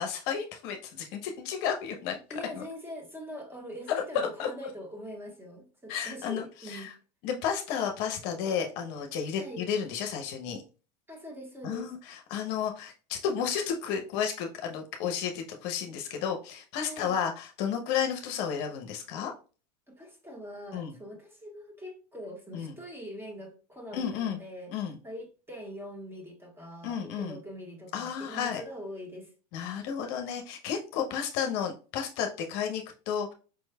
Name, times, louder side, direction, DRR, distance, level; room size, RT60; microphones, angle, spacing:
voice 1, 0.0-2.2 2.5-2.6 4.4-4.5 5.9-6.9 7.2-10.6 11.6-19.3 20.7-20.9 22.5-22.8 23.9-24.4 24.7-25.0 26.8-27.4 27.9-28.6 29.5-33.3, left 7 dB, 55° left, 0.7 m, -32 dB
voice 2, 2.3-6.9 9.4-9.6 11.1-11.9 16.8-17.2 19.9-29.3, equal, 10° right, 1.3 m, -43 dB
4.8 x 3.1 x 2.2 m
hypercardioid pair, 105°, 21 cm